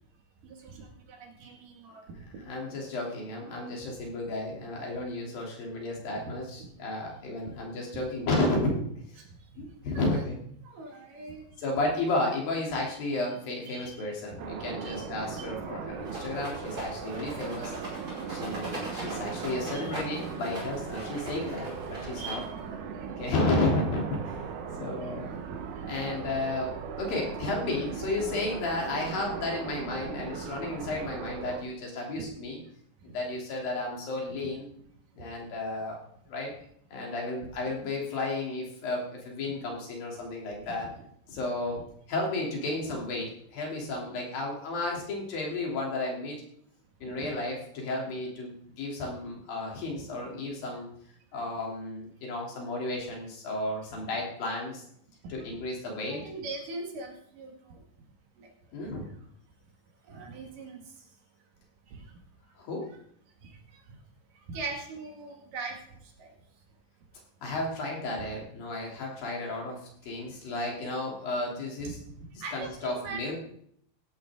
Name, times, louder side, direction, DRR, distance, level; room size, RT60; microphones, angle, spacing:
voice 1, 0.4-2.0 9.2-9.3 9.6-9.7 9.9-10.0 10.6-11.4 13.7-14.0 14.3-14.4 14.8-15.0 15.4-15.5 17.7-18.4 19.7-19.9 22.2-22.5 24.7-24.8 25.5-25.6 32.1-32.2 40.7-40.8 47.2-47.3 56.1-57.8 58.4-58.5 60.1-60.8 61.9-62.0 63.4-63.5 64.5-65.7 66.2-66.3 71.8-71.9 72.4-73.2, right 3 dB, 55° right, 2 dB, 3.2 m, -41 dB
voice 2, 2.4-8.8 9.6-10.4 11.6-17.7 18.3-22.4 23.2-24.4 24.8-25.3 25.9-32.6 33.0-34.7 35.2-36.0 36.3-36.5 36.9-40.9 41.3-41.8 42.1-46.4 47.0-50.9 51.3-54.8 55.3-56.2 58.7-59.1 62.6-62.9 67.4-69.8 70.1-72.0 72.5-73.4, left 2 dB, 55° left, -1 dB, 4.6 m, -32 dB
sound 1, 14.4-31.6, right 6 dB, 85° right, 1.7 m, -38 dB
Rattle, 16.0-22.7, right 1 dB, 20° right, 5.3 m, -41 dB
16.5 x 12.0 x 3.7 m, 0.67 s
omnidirectional pair, 5.3 m